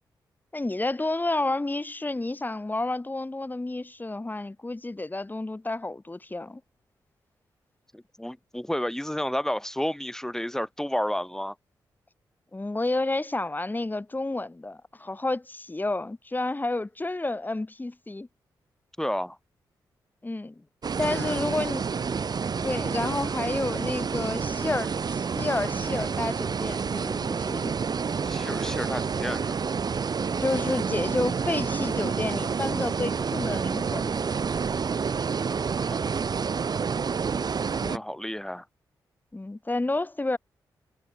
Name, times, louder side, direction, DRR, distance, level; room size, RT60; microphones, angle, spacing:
voice 1, 0.5-6.6 12.5-18.3 20.2-20.6 21.0-21.8 22.6-27.7 30.4-34.1 37.8-38.0 39.3-40.4, left 2 dB, 20° left, 7.3 m, -30 dB
voice 2, 7.9-11.6 19.0-19.4 21.1-21.4 28.2-29.6 35.9-36.0 37.8-38.6, left 1 dB, 5° left, 1.8 m, -31 dB
sound 1, 20.8-38.0, right 5 dB, 55° right, 4.2 m, -29 dB
cardioid pair, 60°, 8 cm